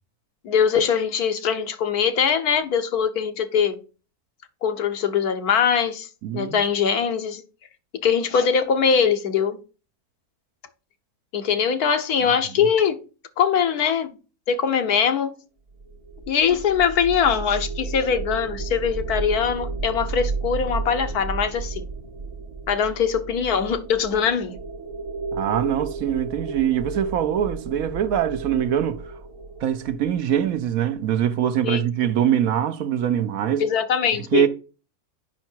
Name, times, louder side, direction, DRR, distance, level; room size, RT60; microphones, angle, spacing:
voice 1, 0.4-3.8 4.6-6.1 6.3-7.4 8.0-9.6 11.3-13.0 13.4-14.1 14.5-15.3 16.3-21.9 22.7-24.6 31.6-31.8 33.6-34.5, left 7 dB, 80° left, 1.5 m, -22 dB
voice 2, 6.2-6.6 25.3-29.1 29.6-33.6 34.1-34.5, right 10 dB, 70° right, 1.1 m, -23 dB
sound 1, 15.8-31.0, right 3 dB, 30° right, 0.7 m, -33 dB
8.5 x 5.7 x 4.5 m
omnidirectional pair, 1.6 m